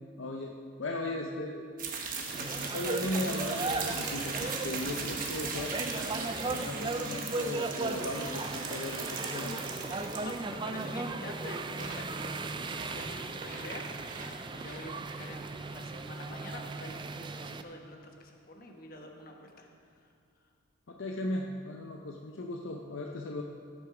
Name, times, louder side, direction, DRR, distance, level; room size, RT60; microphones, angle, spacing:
voice 1, 0.2-1.6 2.3-9.7 20.9-23.4, left 1 dB, 65° left, 1 dB, 0.7 m, -37 dB
sound 1, 1.8-17.1, right 4 dB, 40° right, 1.2 m, -39 dB
sound 2, 2.3-17.6, right 3 dB, 20° right, 0.3 m, -37 dB
voice 2, 10.2-19.7 19.9-20.1 20.4-20.5, left 1 dB, 45° left, 2 dB, 1.2 m, -47 dB
17.5 x 6.5 x 4.9 m, 2.3 s
head